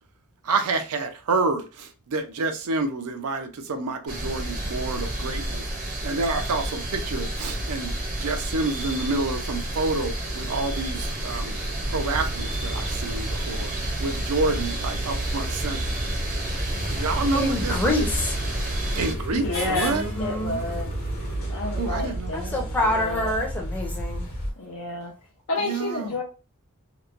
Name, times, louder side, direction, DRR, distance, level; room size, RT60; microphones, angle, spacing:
voice 1, 0.5-5.6 6.0-11.5 11.9-13.7 14.0-15.8 16.9-18.1 19.0-20.0 21.8-22.3 25.7-26.1, right 3 dB, 90° right, 0.5 m, -28 dB
sound 1, 4.1-19.1, right 1 dB, 40° right, 0.6 m, -30 dB
sound 2, 10.2-22.7, right 2 dB, 70° right, 0.9 m, -45 dB
sound 3, 11.9-24.5, right 1 dB, 45° left, 0.8 m, -32 dB
voice 2, 17.3-18.4 19.9-20.6 22.3-24.3, left 1 dB, 10° left, 0.6 m, -26 dB
voice 3, 19.3-20.9 21.5-23.3 24.6-25.1 25.5-26.2, left 2 dB, 75° left, 0.6 m, -30 dB
2.9 x 2.1 x 2.4 m
head